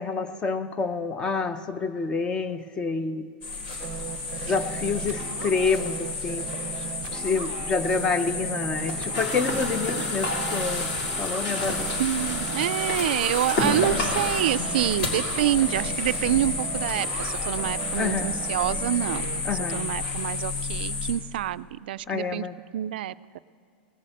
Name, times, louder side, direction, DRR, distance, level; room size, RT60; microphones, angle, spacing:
voice 1, 0.0-3.3 4.4-6.5 7.1-10.9 11.2-11.9 18.0-18.3 19.4-19.9 22.1-22.5, left 4 dB, 15° left, 12 dB, 0.5 m, -28 dB
sound 1, 3.4-21.1, left 3 dB, 70° left, 3.8 m, -31 dB
sound 2, 3.8-19.4, right 10 dB, 30° right, 0.6 m, -38 dB
sound 3, 9.1-14.4, left 2 dB, 55° left, 2.9 m, -30 dB
voice 2, 12.0-19.3 19.5-22.5 22.7-23.4, right 13 dB, 85° right, 15 dB, 0.3 m, -27 dB
18.5 x 7.6 x 7.8 m, 2.4 s
supercardioid pair, 170°, 5 cm